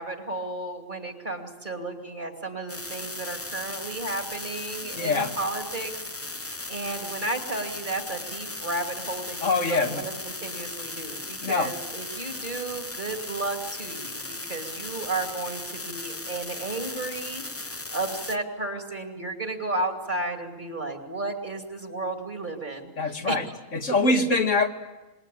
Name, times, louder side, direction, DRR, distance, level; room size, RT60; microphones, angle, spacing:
voice 1, 0.0-23.6, right 2 dB, 35° right, 4 dB, 2.9 m, -33 dB
sound 1, 2.7-18.4, left 2 dB, 15° left, 0.7 m, -37 dB
voice 2, 4.9-5.3 9.4-10.0 11.4-11.7 23.0-23.4 23.7-24.7, left 3 dB, 70° left, 4 dB, 2.1 m, -24 dB
27.0 x 21.5 x 8.6 m, 1.1 s
omnidirectional pair, 1.3 m